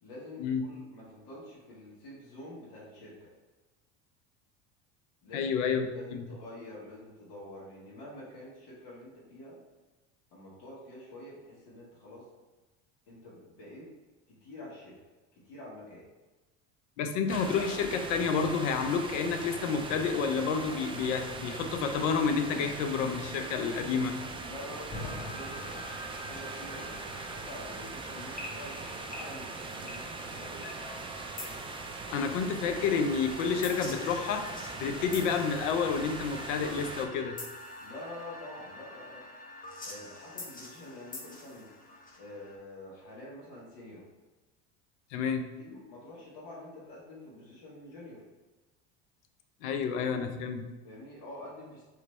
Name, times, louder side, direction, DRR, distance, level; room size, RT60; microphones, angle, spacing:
voice 1, 0.0-3.3 5.2-5.5 5.9-9.6 10.3-12.3 13.1-13.9 14.3-15.0 15.3-16.0 24.4-30.7 37.8-39.2 39.8-41.7 42.2-44.0 45.6-48.2 50.8-51.8, left 1 dB, 65° left, -7 dB, 1.5 m, -47 dB
voice 2, 5.3-6.3 17.0-24.2 32.1-34.4 34.8-37.4 45.1-45.5 49.6-50.6, left 5 dB, 85° left, 6 dB, 0.6 m, -30 dB
sound 1, 17.3-37.1, right 3 dB, 15° right, 0.4 m, -41 dB
sound 2, 24.9-42.6, left 1 dB, 25° left, 1.0 m, -45 dB
3.2 x 3.1 x 4.2 m, 1.2 s
supercardioid pair, 95°, 35 cm